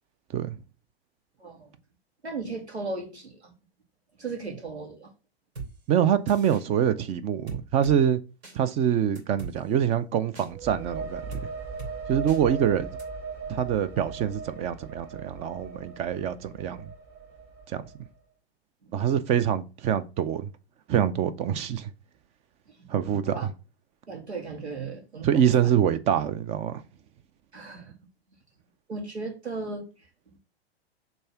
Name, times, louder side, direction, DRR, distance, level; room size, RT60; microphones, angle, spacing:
voice 1, 2.2-3.5 4.2-5.1 18.9-19.0 22.7-22.9 23.3-23.5 24.1-25.7 27.5-28.0 28.9-29.9, right 3 dB, 90° right, 2.3 m, -36 dB
sound 1, 5.6-5.7 6.3-6.6 7.5-8.0 8.4-8.6 9.2-9.5 10.4-10.5 11.3-11.5 11.8-11.9 12.3-12.4 13.0-13.1, right 4 dB, 75° right, 3.2 m, -38 dB
voice 2, 5.9-8.2 8.5-11.4 12.1-13.0 13.5-16.9 17.7-17.8 18.9-20.5 20.9-21.9 22.9-23.5 25.2-26.8, right 9 dB, 20° right, 0.4 m, -25 dB
sound 2, 10.5-18.1, right 5 dB, 40° right, 2.9 m, -39 dB
5.4 x 3.5 x 5.6 m
figure-of-eight pair, 110°, 32 cm